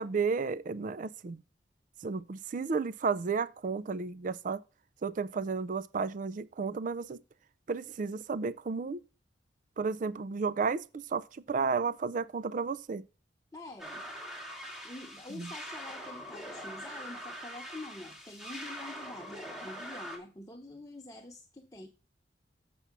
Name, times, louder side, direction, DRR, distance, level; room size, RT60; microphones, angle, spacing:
voice 1, 0.0-1.4 2.0-4.6 5.0-7.2 7.7-9.0 9.8-13.0 15.3-15.5, right 5 dB, 45° right, 0.4 m, -32 dB
voice 2, 13.5-14.0 14.8-21.9, left 2 dB, 20° left, 0.8 m, -46 dB
sound 1, 13.8-20.2, equal, 5° right, 2.1 m, -43 dB
7.1 x 6.8 x 6.0 m
head